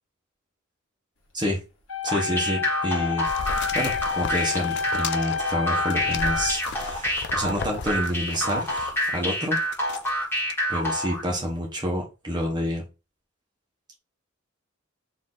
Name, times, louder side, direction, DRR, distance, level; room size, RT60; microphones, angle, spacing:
sound 1, 1.9-6.9, left 7 dB, 75° left, 1.2 m, -29 dB
voice 1, 2.0-3.3 3.7-9.6 10.7-12.8, equal, 20° right, 1.0 m, -28 dB
sound 2, 2.1-11.2, equal, 10° left, 1.5 m, -27 dB
sound 3, 3.2-9.1 9.6-10.1 10.5-10.6, left 5 dB, 55° left, 0.4 m, -36 dB
4.3 x 2.7 x 3.7 m
head